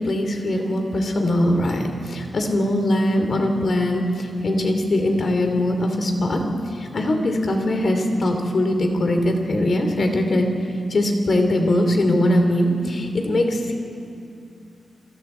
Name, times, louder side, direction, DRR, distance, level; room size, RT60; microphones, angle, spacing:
voice 1, 0.0-10.5 10.9-13.7, left 1 dB, 50° left, 4 dB, 2.8 m, -21 dB
29.5 x 22.0 x 4.5 m, 2.6 s
wide cardioid pair, 130°, 0 cm